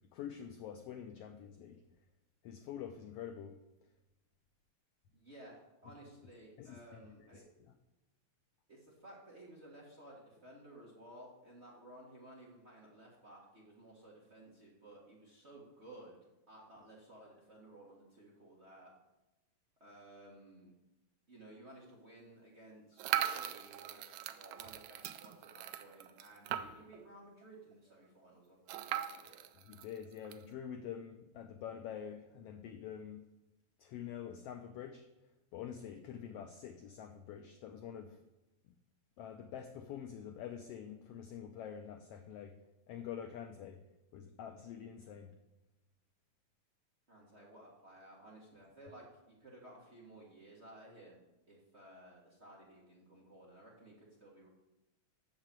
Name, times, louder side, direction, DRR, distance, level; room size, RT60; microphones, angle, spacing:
voice 1, 0.1-1.8 2.4-3.6 6.6-7.7 29.6-33.2 33.8-35.1 35.5-38.2 38.7-38.8 39.2-42.6 42.9-43.8 44.1-45.4, left 8 dB, 85° left, 7 dB, 1.3 m, -46 dB
voice 2, 5.1-7.4 8.7-16.2 16.5-18.9 19.8-20.7 21.3-28.6 28.8-29.5 47.1-51.2 51.5-54.5, right 1 dB, 30° right, -4 dB, 1.3 m, -56 dB
sound 1, 23.0-27.0 27.4-27.5 27.7-27.8 28.7-30.4, right 11 dB, 80° right, 1.8 m, -39 dB
6.6 x 6.4 x 7.4 m, 0.98 s
omnidirectional pair, 3.3 m